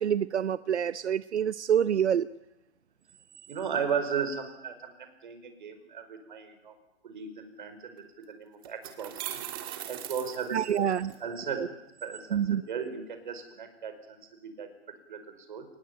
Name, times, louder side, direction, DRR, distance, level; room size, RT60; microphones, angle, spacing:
voice 1, 0.0-2.3 10.5-11.1 11.6-11.7 12.3-12.6, right 9 dB, 85° right, 16 dB, 0.8 m, -27 dB
voice 2, 3.5-6.7 7.0-9.4 9.9-11.7 12.0-14.7 15.1-15.7, right 6 dB, 45° right, 8 dB, 5.1 m, -36 dB
sound 1, 8.0-8.1 8.6-11.2, right 12 dB, 20° right, 1.7 m, -39 dB
23.5 x 20.0 x 9.1 m, 0.90 s
hypercardioid pair, 170°, 33 cm